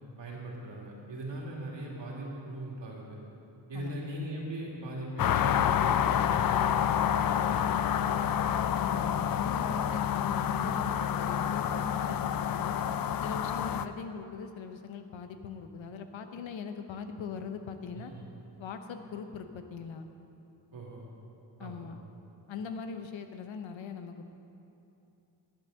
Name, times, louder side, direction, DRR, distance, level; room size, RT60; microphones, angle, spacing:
voice 1, 0.2-3.2 3.7-6.7 7.0-7.6 7.9-8.1 17.9-18.2 20.7-21.1 21.6-21.9, right 1 dB, 70° right, -3 dB, 2.5 m, -40 dB
voice 2, 3.7-4.0 8.8-12.8 13.2-18.1 18.6-20.1 21.6-22.0 22.5-24.3, left 5 dB, 80° left, 7 dB, 0.9 m, -40 dB
sound 1, 5.2-13.9, left 9 dB, 50° left, 0.5 m, -28 dB
10.5 x 8.0 x 6.4 m, 2.8 s
cardioid pair, 70°, 46 cm